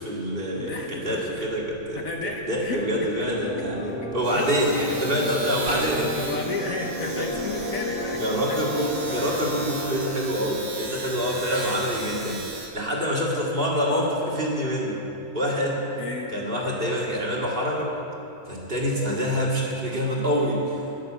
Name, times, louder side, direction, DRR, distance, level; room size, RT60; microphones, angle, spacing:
voice 1, 0.0-2.0 2.5-6.2 7.2-7.3 8.2-12.4 12.7-15.1 15.3-15.8 16.3-17.9 18.5-20.8, equal, 35° right, -3 dB, 2.3 m, -26 dB
voice 2, 0.5-1.5 2.0-3.1 4.0-4.5 5.2-5.3 6.1-8.6 9.2-9.5 16.0-16.3, left 2 dB, 55° left, 1 dB, 1.5 m, -33 dB
Domestic sounds home sounds, 1.0-1.1 1.4-12.7, right 3 dB, 60° right, 2.4 m, -37 dB
sound 1, 3.2-10.1, equal, 40° left, 2.6 m, -33 dB
12.0 x 11.0 x 7.4 m, 2.9 s
omnidirectional pair, 1.8 m